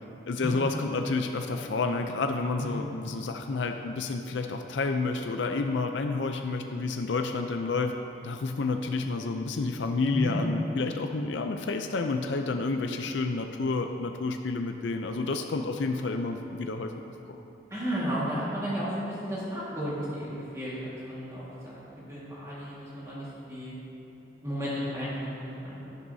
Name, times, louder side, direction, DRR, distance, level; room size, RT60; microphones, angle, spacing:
voice 1, 0.3-7.9 8.2-16.9 17.3-17.4, left 3 dB, 85° left, 5 dB, 0.5 m, -30 dB
voice 2, 17.7-21.8 22.1-23.7 24.4-26.0, equal, 15° right, -8 dB, 1.8 m, -33 dB
12.0 x 10.5 x 2.7 m, 2.8 s
head